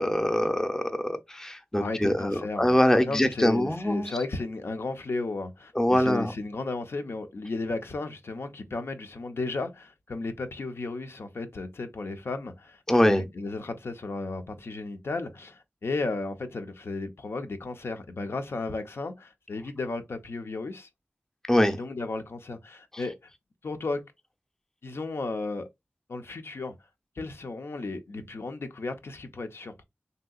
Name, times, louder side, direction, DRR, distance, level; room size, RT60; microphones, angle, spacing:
voice 1, 0.0-4.1 5.8-6.3 12.9-13.3 21.5-21.8, left 1 dB, 10° left, 0.6 m, -24 dB
voice 2, 1.8-2.8 3.1-20.9 21.7-23.3 23.6-24.1 24.8-25.7 26.1-26.7 27.2-29.8, left 3 dB, 70° left, 0.5 m, -34 dB
3.2 x 2.7 x 2.3 m
wide cardioid pair, 60°, 4 cm